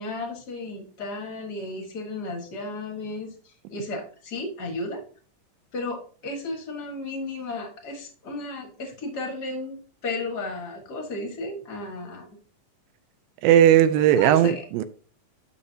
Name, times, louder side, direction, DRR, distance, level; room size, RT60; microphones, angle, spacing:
voice 1, 0.0-5.0 5.7-12.3 14.1-14.6, left 2 dB, 45° left, 1.4 m, -34 dB
voice 2, 13.4-14.8, right 11 dB, 85° right, 2.3 m, -17 dB
11.0 x 6.6 x 2.8 m
omnidirectional pair, 4.1 m